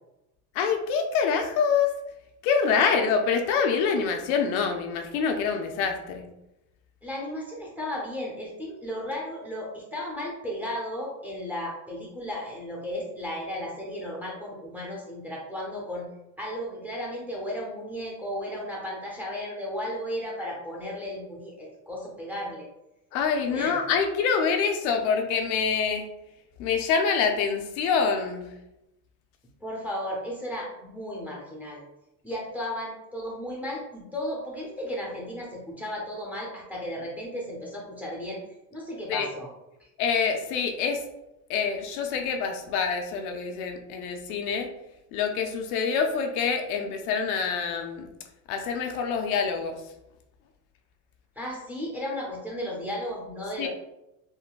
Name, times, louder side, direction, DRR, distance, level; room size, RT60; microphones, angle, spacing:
voice 1, 0.5-1.9 2.4-6.3 23.1-26.1 26.6-28.5 39.1-39.3 40.0-41.0 41.5-44.7 45.1-48.1 48.5-49.8 53.6-53.7, left 6 dB, 65° left, 4 dB, 0.6 m, -26 dB
voice 2, 7.0-16.1 16.4-22.7 23.5-23.8 29.6-31.8 32.2-38.4 38.7-39.5 39.8-39.9 51.4-53.7, left 1 dB, 5° right, -3 dB, 0.6 m, -34 dB
3.7 x 2.1 x 2.3 m, 0.91 s
supercardioid pair, 120°, 46 cm